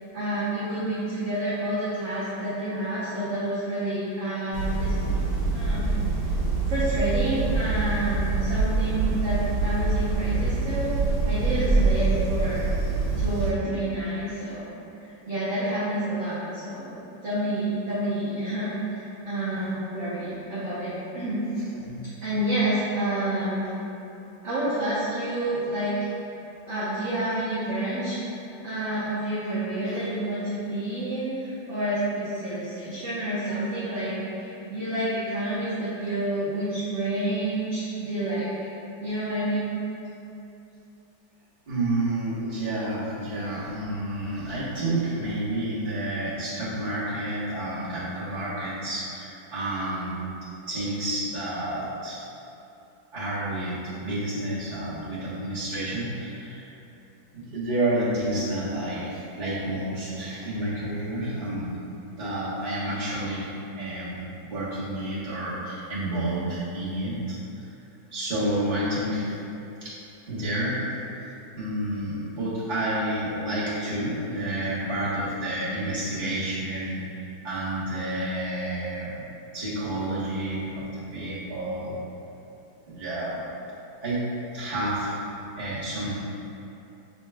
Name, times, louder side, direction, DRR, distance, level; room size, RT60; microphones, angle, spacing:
voice 1, 0.1-5.0 5.5-6.0 6.7-12.7 13.2-14.7 15.3-16.9 17.2-21.4 22.2-23.7 24.4-26.1 26.7-28.2 28.6-38.5 39.0-39.7, right 1 dB, 50° right, -12 dB, 0.9 m, -29 dB
sound 1, 4.5-13.5, right 3 dB, 80° right, 1.5 m, -25 dB
voice 2, 41.7-52.3 53.1-56.7 57.3-61.7 62.2-67.4 68.1-69.3 69.8-70.0 70.3-70.9 71.6-82.0 82.9-83.4 84.0-84.3 84.5-85.2 85.6-86.2, right 1 dB, 30° right, -11 dB, 1.1 m, -30 dB
6.6 x 3.0 x 2.3 m, 2.8 s
omnidirectional pair, 2.1 m